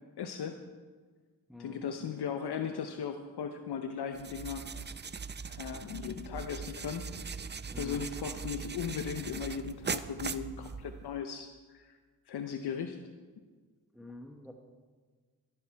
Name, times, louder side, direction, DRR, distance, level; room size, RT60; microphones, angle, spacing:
voice 1, 0.2-0.6 1.6-4.6 5.5-7.1 7.8-12.0 12.3-13.0 13.4-13.5, left 7 dB, 80° left, 7 dB, 0.8 m, -37 dB
voice 2, 1.5-1.9 7.7-8.1 13.9-14.5, left 2 dB, ahead, 3 dB, 1.2 m, -47 dB
sound 1, 4.1-11.1, right 5 dB, 30° right, 0.5 m, -40 dB
15.0 x 10.5 x 4.6 m, 1.5 s
cardioid pair, 55°, 39 cm